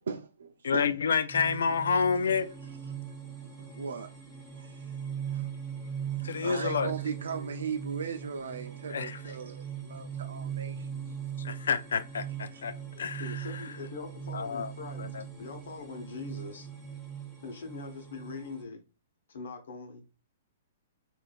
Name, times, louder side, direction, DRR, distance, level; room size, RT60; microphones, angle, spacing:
voice 1, 0.1-1.0 3.4-4.1 4.5-4.9 5.2-5.5 6.2-11.2 12.5-12.6, right 6 dB, 90° right, 0.3 m, -38 dB
voice 2, 0.6-2.5 6.2-6.9 8.9-9.2 11.4-12.7 13.0-13.6 14.3-14.7 15.0-15.2, left 6 dB, 90° left, 0.3 m, -29 dB
sound 1, 1.3-18.6, right 8 dB, ahead, 0.5 m, -40 dB
voice 3, 12.9-15.0 15.4-16.7 17.4-18.8 19.3-20.0, left 4 dB, 65° left, 0.8 m, -42 dB
2.5 x 2.3 x 3.4 m
hypercardioid pair, 180°, 0 cm